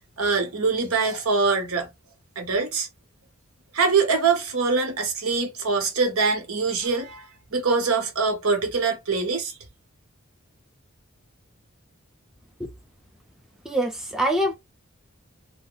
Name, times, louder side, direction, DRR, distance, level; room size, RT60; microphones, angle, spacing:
voice 1, 0.2-1.9 2.4-2.9 3.7-7.3 7.5-9.6, right 4 dB, 80° right, 0.9 m, -23 dB
voice 2, 13.6-14.5, right 1 dB, ahead, 0.4 m, -24 dB
2.8 x 2.1 x 3.8 m
head